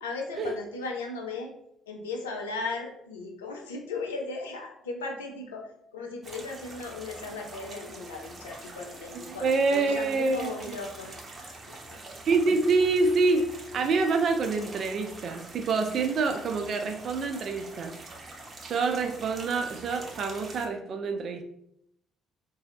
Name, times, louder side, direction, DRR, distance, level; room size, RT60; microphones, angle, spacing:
voice 1, 0.0-1.5 1.9-12.0, left 3 dB, 90° left, 2 dB, 0.6 m, -37 dB
sound 1, 6.2-20.7, right 2 dB, 35° right, 0.9 m, -45 dB
voice 2, 9.3-10.5 12.3-13.4 13.7-18.0 18.6-21.4, right 4 dB, 55° right, 6 dB, 0.4 m, -26 dB
3.0 x 2.7 x 4.0 m, 0.76 s
hypercardioid pair, 50°, 0 cm